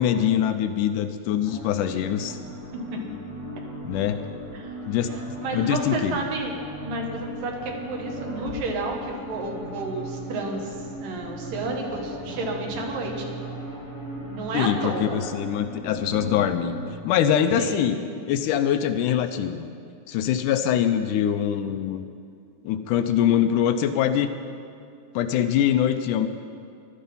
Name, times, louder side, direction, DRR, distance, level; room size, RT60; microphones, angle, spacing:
voice 1, 0.0-2.4 3.8-4.2 4.9-5.1 5.5-6.2 14.5-16.7 17.0-18.0 18.3-19.7 20.1-22.0 22.6-24.3 25.2-26.3, left 10 dB, 80° left, 9 dB, 2.1 m, -23 dB
sound 1, 1.4-16.9, right 1 dB, 20° right, 3.4 m, -37 dB
voice 2, 5.4-6.5 6.8-13.3 14.3-15.2 17.5-17.9, right 2 dB, 85° right, 1 dB, 3.3 m, -31 dB
16.5 x 12.0 x 5.5 m, 2.4 s
omnidirectional pair, 3.9 m